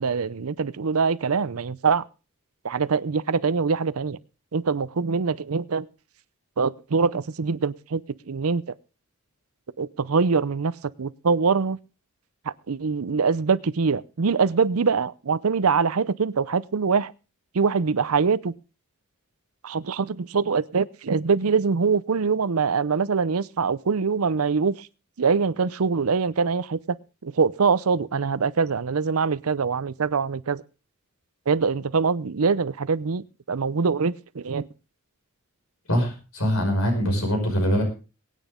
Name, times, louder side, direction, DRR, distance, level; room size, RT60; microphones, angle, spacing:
voice 1, 0.0-2.0 2.6-4.2 4.5-5.9 6.6-8.0 8.3-8.6 9.8-10.7 11.0-11.8 12.7-17.1 17.5-18.5 19.6-24.9 25.2-27.0 27.2-30.6 31.5-34.7, right 5 dB, 75° right, 0.6 m, -23 dB
voice 2, 35.9-37.8, equal, 75° left, 5.8 m, -23 dB
22.5 x 9.2 x 3.7 m
head